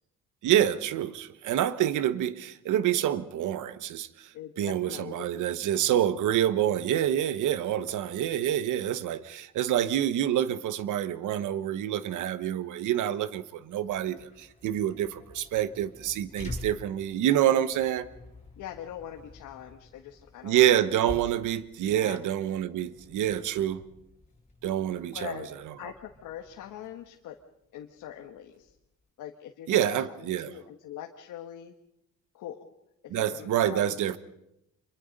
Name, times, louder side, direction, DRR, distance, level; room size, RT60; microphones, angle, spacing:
voice 1, 0.4-4.1 4.6-18.1 20.4-23.8 24.6-25.4 29.7-30.5 33.1-34.2, right 11 dB, 80° right, 1.2 m, -27 dB
voice 2, 4.3-5.9 18.6-20.7 21.9-22.2 24.9-25.5 25.8-27.3 27.7-28.8 29.2-29.9 30.2-31.7 32.3-32.6 33.0-34.0, left 11 dB, 85° left, 1.5 m, -43 dB
sound 1, 13.7-29.1, left 2 dB, 20° left, 6.8 m, -48 dB
26.0 x 23.0 x 5.3 m
cardioid pair, 90°, 30 cm